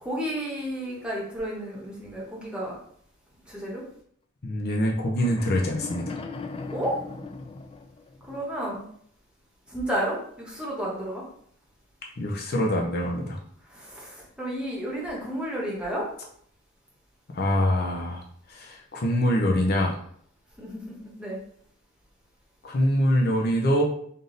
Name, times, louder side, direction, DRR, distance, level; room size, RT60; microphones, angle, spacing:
voice 1, 0.0-2.8 3.5-3.8 6.7-7.0 8.3-8.8 9.7-11.2 13.7-16.1 20.6-21.4, right 1 dB, 5° right, -4 dB, 1.1 m, -32 dB
voice 2, 4.4-6.2 12.2-13.4 17.3-20.0 22.6-23.8, equal, 50° left, 0 dB, 0.7 m, -24 dB
sound 1, 5.1-8.4, left 3 dB, 25° left, 0.3 m, -38 dB
3.7 x 2.6 x 3.9 m, 0.63 s
head